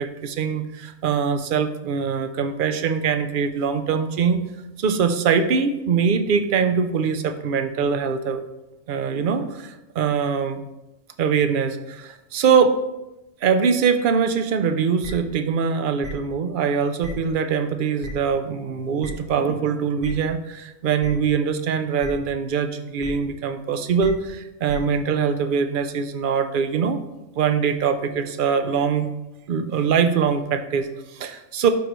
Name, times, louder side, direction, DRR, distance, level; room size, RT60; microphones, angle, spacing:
voice 1, 0.0-4.4 4.8-8.4 8.9-10.6 11.2-12.8 13.4-27.0 27.3-29.1 29.5-31.7, right 6 dB, 55° right, 9 dB, 0.6 m, -23 dB
sound 1, 15.0-15.1 16.0-16.1 17.0-17.1 18.0-18.1 19.0-19.1 20.0-20.1 21.0-21.1 22.0-22.1 23.0-23.1 24.0-24.1 24.7-24.8, left 1 dB, 25° right, 1.7 m, -35 dB
11.5 x 4.8 x 3.1 m, 0.97 s
omnidirectional pair, 1.3 m